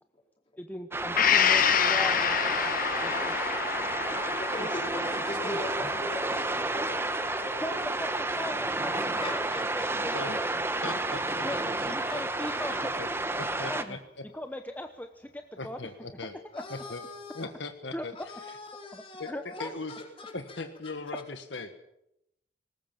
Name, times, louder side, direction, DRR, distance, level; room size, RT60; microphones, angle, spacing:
voice 1, 0.6-3.4 4.6-4.7 5.4-5.6 7.6-8.1 8.3-10.1 11.4-11.6 11.8-12.9 13.7-14.0 14.3-15.8 16.6-16.7 17.9-18.0 18.9-19.7, left 1 dB, 10° left, 6 dB, 0.9 m, -39 dB
sound 1, 0.8-5.8, right 2 dB, 30° right, 4.3 m, -51 dB
sound 2, 0.9-13.8, right 2 dB, 15° right, 1.1 m, -31 dB
Gong, 1.2-8.8 9.2-9.3, left 8 dB, 50° left, 1.0 m, -29 dB
voice 2, 4.4-7.8 8.9-10.2 11.5-12.8 16.5-17.5 18.1-20.6, left 2 dB, 30° left, 1 dB, 4.6 m, -42 dB
voice 3, 10.8-11.5 11.8-12.2 13.0-13.1 13.4-14.2 15.6-16.3 16.7-17.0 17.3-18.1 18.5-18.6 19.2-20.0 20.3-21.7, left 3 dB, 75° left, 8 dB, 1.4 m, -39 dB
20.0 x 19.5 x 7.3 m, 0.83 s
head